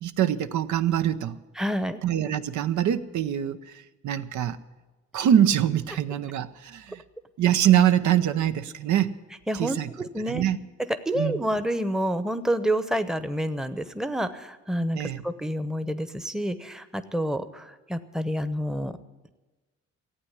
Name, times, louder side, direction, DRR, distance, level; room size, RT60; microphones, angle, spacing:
voice 1, 0.0-1.4 2.0-4.6 5.1-7.0 7.4-9.1 9.5-9.9 10.3-10.6 11.2-11.4 14.9-15.2, right 10 dB, 70° right, 10 dB, 0.8 m, -24 dB
voice 2, 1.6-2.0 9.5-10.5 10.9-18.9, equal, ahead, 11 dB, 0.9 m, -28 dB
15.0 x 8.7 x 9.8 m, 1.2 s
cardioid pair, 90°, 30 cm